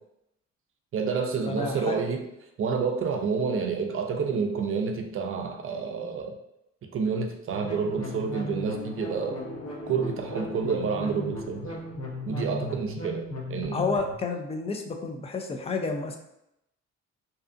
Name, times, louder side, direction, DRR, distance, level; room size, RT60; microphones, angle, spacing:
voice 1, 0.9-2.2 2.6-6.3 6.9-9.4 9.9-11.8 12.3-13.8, right 5 dB, 45° right, 4 dB, 0.5 m, -29 dB
voice 2, 1.5-2.0 13.7-16.2, left 4 dB, 20° left, 4 dB, 0.4 m, -30 dB
sound 1, 7.5-14.2, left 1 dB, 55° left, 0.8 m, -36 dB
2.7 x 2.4 x 2.4 m, 0.83 s
cardioid pair, 90°, 30 cm